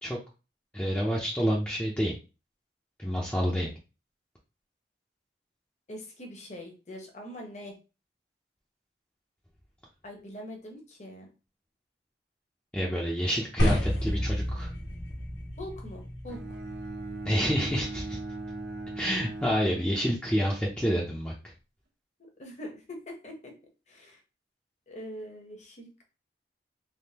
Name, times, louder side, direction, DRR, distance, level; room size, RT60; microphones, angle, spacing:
voice 1, 0.7-2.1 3.0-3.7 12.7-14.7 17.3-18.2 19.0-21.3, equal, 5° left, -4 dB, 0.6 m, -28 dB
voice 2, 5.9-7.7 10.0-11.3 15.6-16.6 22.4-23.5 23.9-24.2 24.9-26.0, left 1 dB, 40° left, 2 dB, 0.9 m, -43 dB
sound 1, 13.6-19.7, equal, 85° left, 1.4 m, -33 dB
Bowed string instrument, 16.3-20.5, right 2 dB, 65° right, 0.7 m, -39 dB
3.6 x 2.9 x 2.8 m, 0.31 s
head